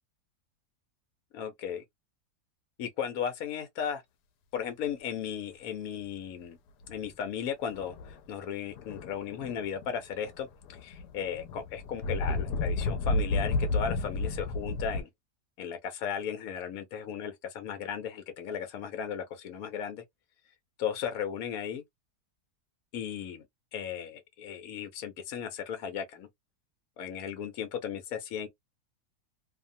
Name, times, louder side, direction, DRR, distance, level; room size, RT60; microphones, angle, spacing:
voice 1, 1.3-1.8 2.8-4.0 4.5-6.6 6.9-10.5 10.8-15.1 15.6-20.0 20.8-21.8 22.9-23.4 23.7-26.3 27.0-28.5, left 8 dB, 65° left, 1.2 m, -36 dB
sound 1, 6.8-7.1 7.7-8.2 8.7-9.9 10.2-15.0, left 2 dB, 90° left, 1.2 m, -32 dB
2.8 x 2.3 x 2.6 m
omnidirectional pair, 1.7 m